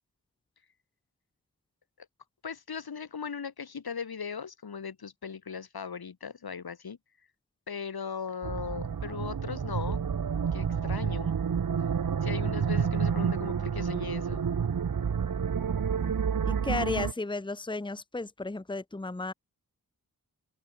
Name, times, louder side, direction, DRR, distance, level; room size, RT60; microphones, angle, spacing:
voice 1, 2.4-7.0 7.7-10.0 10.5-11.4 12.2-14.5, left 6 dB, 90° left, 4.5 m, -38 dB
sound 1, 8.4-17.1, right 7 dB, 65° right, 1.5 m, -29 dB
voice 2, 16.4-19.3, left 2 dB, 15° left, 1.1 m, -33 dB
open air
wide cardioid pair, 125°, 36 cm